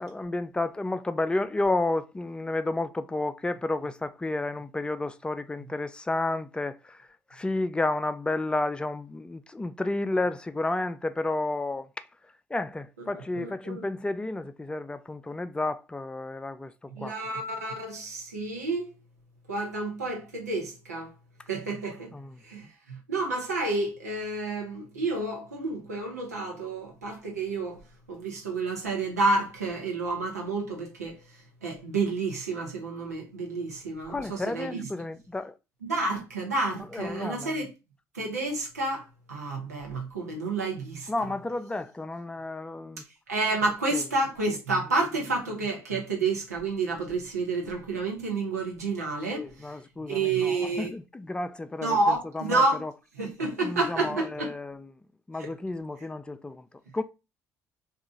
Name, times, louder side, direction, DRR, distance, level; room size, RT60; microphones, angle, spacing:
voice 1, 0.0-12.1 12.5-17.2 22.1-22.4 34.1-35.5 36.9-37.7 41.1-43.0 49.3-52.9 53.6-54.9 55.3-56.6 56.9-57.0, left 2 dB, 10° left, 0.4 m, -31 dB
voice 2, 13.1-13.8 16.9-18.9 19.5-21.1 21.5-22.1 22.4-27.8 28.1-31.2 31.6-34.8 35.8-37.7 38.1-41.1 43.3-49.7 50.1-50.9 51.8-52.8 53.2-54.5 55.4-55.5, right 3 dB, 85° right, 0.9 m, -30 dB
2.8 x 2.4 x 3.6 m
figure-of-eight pair, 50°, 8 cm